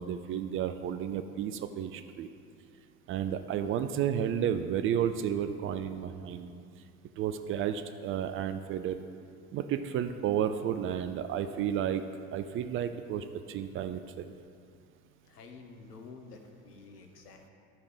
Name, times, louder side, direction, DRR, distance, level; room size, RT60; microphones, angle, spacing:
voice 1, 0.0-2.3 3.1-6.5 7.2-9.0 9.5-12.0 12.3-14.3, right 9 dB, 30° right, 9 dB, 0.3 m, -32 dB
voice 2, 15.3-17.5, left 4 dB, 85° left, 4 dB, 1.0 m, -50 dB
12.5 x 5.0 x 5.0 m, 2.3 s
figure-of-eight pair, 70°, 46 cm